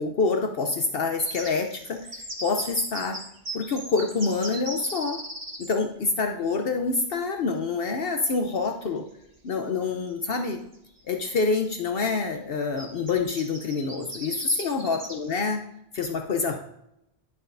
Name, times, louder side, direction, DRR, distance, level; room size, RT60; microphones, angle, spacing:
voice 1, 0.0-2.0 2.4-3.2 3.5-5.2 5.6-9.1 9.4-10.6 11.1-15.6 15.9-16.6, left 4 dB, 65° left, 4 dB, 0.9 m, -26 dB
sound 1, 1.2-5.8 8.2-8.3 8.7-8.8 10.1-10.2 10.5-11.0 11.5-11.7 12.8-15.5, right 1 dB, 40° right, 1.5 m, -38 dB
11.5 x 5.9 x 2.5 m, 0.80 s
omnidirectional pair, 1.1 m